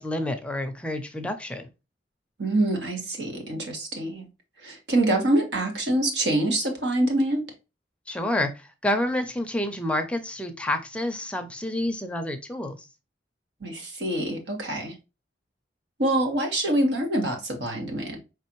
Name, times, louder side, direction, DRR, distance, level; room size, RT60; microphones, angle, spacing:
voice 1, 0.0-1.7 8.1-12.9, left 1 dB, 5° left, 6 dB, 0.5 m, -29 dB
voice 2, 2.4-4.2 4.6-7.5 13.6-14.9 16.0-18.2, right 1 dB, 85° right, 3 dB, 1.5 m, -25 dB
4.8 x 3.3 x 3.0 m, 0.27 s
head